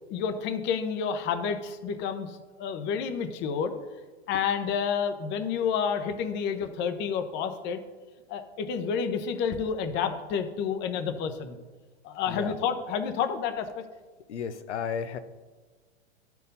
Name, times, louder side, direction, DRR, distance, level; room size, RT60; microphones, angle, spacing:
voice 1, 0.1-3.7 4.3-7.8 8.3-11.6 12.0-13.8, left 6 dB, 30° left, 8 dB, 0.9 m, -29 dB
voice 2, 14.3-15.2, left 7 dB, 80° left, 10 dB, 0.8 m, -33 dB
12.0 x 4.6 x 5.4 m, 1.3 s
hypercardioid pair, 120°, 34 cm